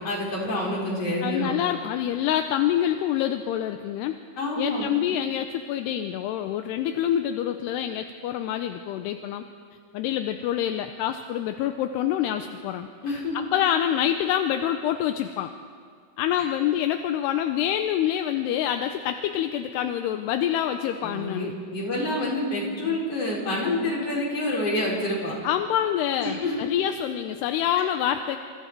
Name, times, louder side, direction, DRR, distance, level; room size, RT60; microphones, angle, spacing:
voice 1, 0.0-1.5 4.4-4.9 13.0-13.3 21.0-25.3 26.2-26.5, left 1 dB, 35° left, -3 dB, 5.9 m, -27 dB
voice 2, 1.2-4.2 4.6-9.5 9.9-12.9 13.3-15.5 16.2-21.5 25.4-28.4, left 10 dB, 80° left, 7 dB, 2.7 m, -26 dB
29.0 x 28.0 x 4.6 m, 2.1 s
omnidirectional pair, 4.9 m